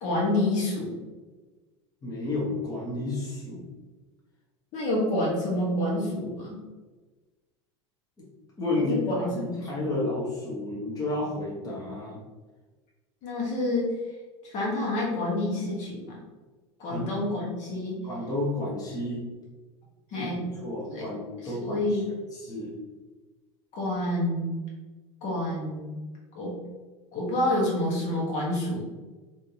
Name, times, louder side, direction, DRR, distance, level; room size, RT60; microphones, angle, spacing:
voice 1, 0.0-1.0 4.7-6.6 8.7-9.9 13.2-13.9 14.4-16.2 16.8-18.0 20.1-20.5 20.9-21.1 21.4-22.1 23.7-24.5 25.2-25.9 26.3-26.5 27.1-28.9, left 1 dB, 50° left, -4 dB, 1.3 m, -28 dB
voice 2, 2.0-3.7 8.2-8.3 8.6-12.2 16.9-17.1 18.0-19.2 20.2-20.3 20.6-22.0 22.3-22.7 26.4-26.5, left 2 dB, 25° left, -5 dB, 1.1 m, -31 dB
3.2 x 2.7 x 2.9 m, 1.3 s
hypercardioid pair, 90°, 15 cm